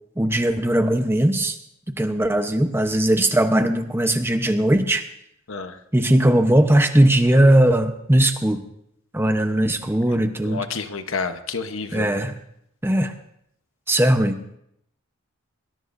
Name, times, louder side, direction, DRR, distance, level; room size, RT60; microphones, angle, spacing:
voice 1, 0.2-1.6 2.0-5.0 5.9-8.6 9.1-10.6 11.9-12.3 12.8-13.1 13.9-14.4, right 1 dB, 10° right, 6 dB, 0.9 m, -19 dB
voice 2, 10.4-12.1, left 4 dB, 75° left, 8 dB, 1.1 m, -29 dB
22.5 x 20.5 x 2.7 m, 0.75 s
head